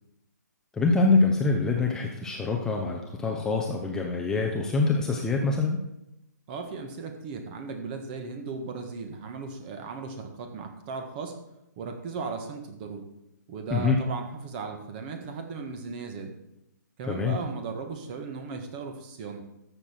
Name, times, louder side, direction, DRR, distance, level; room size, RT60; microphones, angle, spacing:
voice 1, 0.7-5.8 13.7-14.0 17.1-17.4, left 3 dB, 5° left, 0 dB, 0.8 m, -25 dB
voice 2, 6.5-11.4 11.8-13.1 13.5-16.3 17.0-19.5, right 4 dB, 30° right, 6 dB, 1.5 m, -37 dB
13.5 x 6.8 x 4.5 m, 0.87 s
hypercardioid pair, 150°, 10 cm